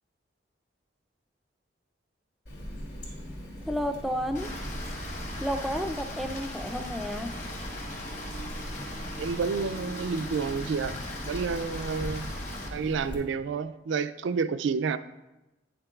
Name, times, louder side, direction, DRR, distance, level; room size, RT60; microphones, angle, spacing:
Water tap faucet, 2.5-13.2, equal, 65° left, 2.3 m, -41 dB
voice 1, 3.7-4.5 5.4-7.4, equal, ahead, 7 dB, 0.3 m, -31 dB
Rain, 4.3-12.7, left 1 dB, 40° left, 1.2 m, -39 dB
voice 2, 9.2-10.9 11.2-12.3 12.7-15.0, right 5 dB, 80° right, 12 dB, 0.3 m, -29 dB
9.6 x 6.7 x 2.3 m, 1.0 s
head